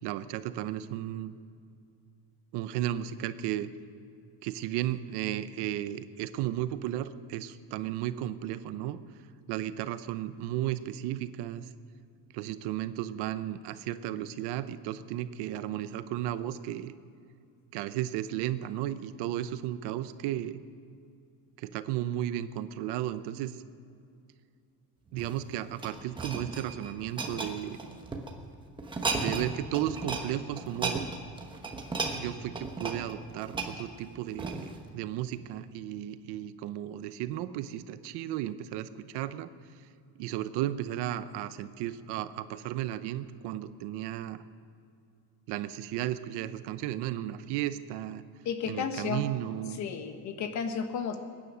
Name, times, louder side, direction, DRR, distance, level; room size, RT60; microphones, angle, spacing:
voice 1, 0.0-1.4 2.5-3.7 4.4-9.0 9.5-11.7 12.3-16.9 17.7-20.6 21.6-23.6 25.1-28.0 29.2-31.1 32.1-39.5 40.2-44.4 45.5-48.2 48.7-49.8, right 12 dB, 85° right, 13 dB, 0.8 m, -34 dB
sound 1, 25.1-28.3 28.8-29.5 29.7-30.3 30.6-34.8 35.4-35.5, right 3 dB, 10° right, 1.1 m, -35 dB
voice 2, 48.4-49.2 49.8-51.2, left 6 dB, 45° left, 8 dB, 1.3 m, -33 dB
22.0 x 9.9 x 6.2 m, 2.4 s
cardioid pair, 180°, 39 cm